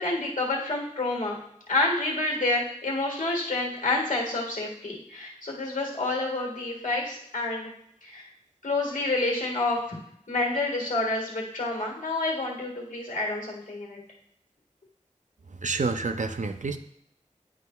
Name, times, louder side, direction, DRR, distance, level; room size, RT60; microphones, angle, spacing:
voice 1, 0.0-1.4 1.7-7.7 8.0-8.2 8.6-9.8 10.3-14.0, left 2 dB, 80° left, -1 dB, 1.7 m, -28 dB
voice 2, 15.6-16.8, right 4 dB, 70° right, 8 dB, 0.5 m, -28 dB
10.5 x 5.1 x 2.3 m, 0.73 s
wide cardioid pair, 45°, 13 cm